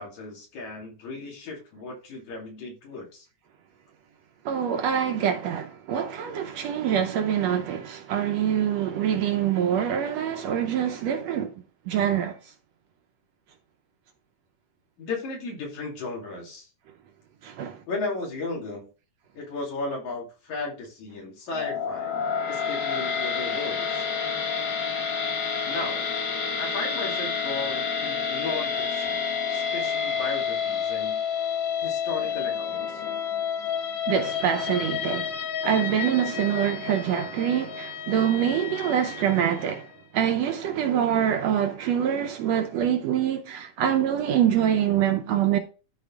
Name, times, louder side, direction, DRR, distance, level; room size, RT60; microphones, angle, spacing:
voice 1, 0.0-3.3 15.0-16.7 17.9-18.9 19.4-22.1 22.5-24.0 25.7-26.1 26.6-29.2 29.5-31.2 31.8-33.0, left 3 dB, 70° left, 4.1 m, -35 dB
voice 2, 4.4-11.5 11.9-12.4 17.4-17.8 34.1-39.9 40.1-45.6, right 9 dB, 75° right, 1.7 m, -25 dB
sound 1, 21.5-39.8, left 6 dB, 50° left, 1.5 m, -29 dB
12.5 x 4.4 x 3.5 m
omnidirectional pair, 3.5 m